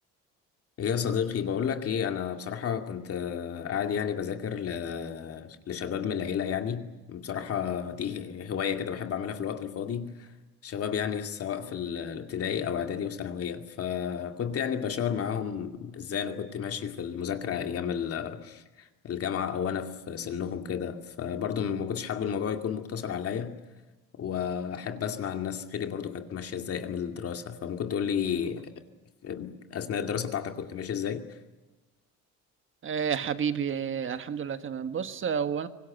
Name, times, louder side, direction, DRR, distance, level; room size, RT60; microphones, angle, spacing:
voice 1, 0.8-10.3 10.6-23.6 24.2-28.7 29.2-31.4, left 8 dB, 50° left, 2.3 m, -32 dB
voice 2, 32.8-35.7, right 7 dB, 40° right, 1.6 m, -30 dB
24.5 x 20.0 x 9.1 m
cardioid pair, 105°, 31 cm